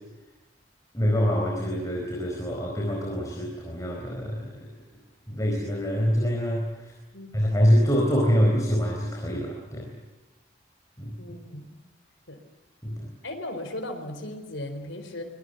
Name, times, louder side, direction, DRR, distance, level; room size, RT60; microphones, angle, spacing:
voice 1, 0.9-4.5 5.3-6.9 7.3-9.9 11.0-11.2 12.8-13.1, equal, 15° left, 0 dB, 4.4 m, -25 dB
voice 2, 11.2-11.6 12.3-12.4 13.2-15.2, left 1 dB, 85° left, 5 dB, 4.3 m, -36 dB
25.0 x 22.5 x 8.0 m, 1.1 s
head